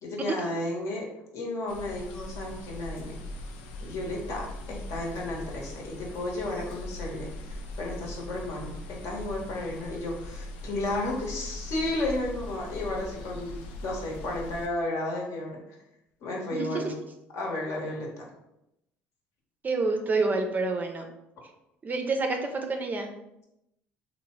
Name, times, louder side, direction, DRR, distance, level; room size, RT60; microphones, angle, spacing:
voice 1, 0.0-1.1 1.3-3.2 3.8-15.6 16.2-16.9 17.3-18.3, left 2 dB, 60° left, -1 dB, 0.9 m, -33 dB
sound 1, 1.7-14.7, left 1 dB, 90° left, 0.3 m, -40 dB
voice 2, 16.5-16.9 19.6-21.1 21.8-23.1, right 3 dB, 30° right, 4 dB, 0.4 m, -28 dB
2.8 x 2.0 x 3.0 m, 0.85 s
supercardioid pair, 80°, 6 cm